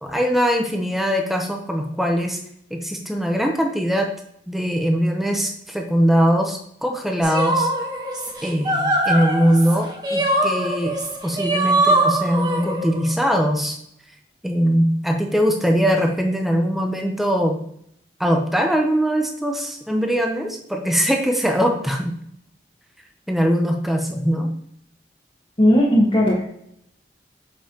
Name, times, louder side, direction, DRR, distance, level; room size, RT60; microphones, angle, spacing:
voice 1, 0.0-2.4 2.7-4.1 4.5-7.7 8.4-11.0 11.2-13.8 14.4-17.6 18.2-22.1 23.3-24.5, equal, ahead, 3 dB, 0.6 m, -21 dB
sound 1, 7.2-13.1, right 1 dB, 25° right, 1.1 m, -22 dB
voice 2, 25.6-26.4, equal, 30° left, -5 dB, 1.3 m, -16 dB
7.6 x 5.3 x 2.9 m, 0.71 s
head